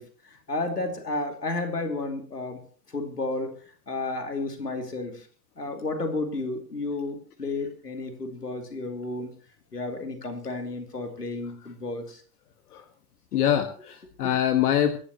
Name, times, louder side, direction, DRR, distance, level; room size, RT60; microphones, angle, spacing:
voice 1, 0.0-2.6 2.9-5.3 5.6-9.3 9.7-12.2 14.2-14.3, left 2 dB, 90° left, 6 dB, 2.6 m, -32 dB
voice 2, 13.3-15.0, left 10 dB, 70° left, 8 dB, 1.6 m, -24 dB
25.0 x 11.0 x 2.9 m, 0.44 s
figure-of-eight pair, 75°, 46 cm